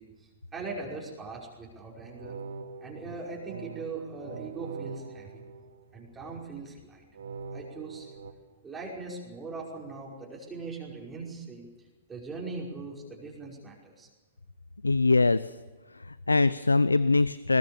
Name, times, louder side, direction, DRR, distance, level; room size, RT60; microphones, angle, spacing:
voice 1, 0.0-2.4 2.8-5.4 5.9-7.1 7.5-8.2 8.6-14.1, right 3 dB, 15° right, -3 dB, 5.4 m, -40 dB
sound 1, 2.0-6.3 7.1-8.3, right 5 dB, 70° right, 1.7 m, -43 dB
voice 2, 14.8-15.6 15.9-17.6, left 3 dB, 90° left, 17 dB, 0.6 m, -23 dB
21.0 x 20.5 x 7.2 m, 1.3 s
figure-of-eight pair, 115°, 0 cm